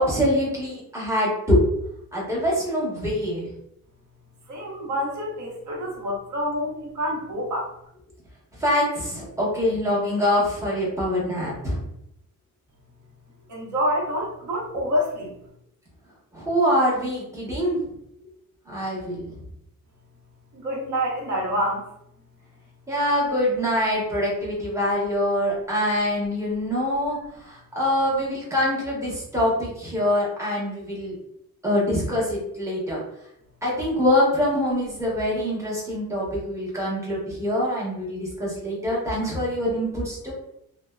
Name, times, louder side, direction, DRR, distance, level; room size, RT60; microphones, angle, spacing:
voice 1, 0.0-1.6 2.1-3.5 8.6-11.8 16.3-17.8 18.7-19.3 22.9-31.2 31.6-33.0 33.6-40.3, left 1 dB, 10° right, -6 dB, 1.0 m, -24 dB
voice 2, 4.5-7.7 13.5-15.3 20.5-21.9, equal, 55° right, -3 dB, 0.9 m, -27 dB
2.6 x 2.1 x 2.3 m, 0.77 s
cardioid pair, 130°, 36 cm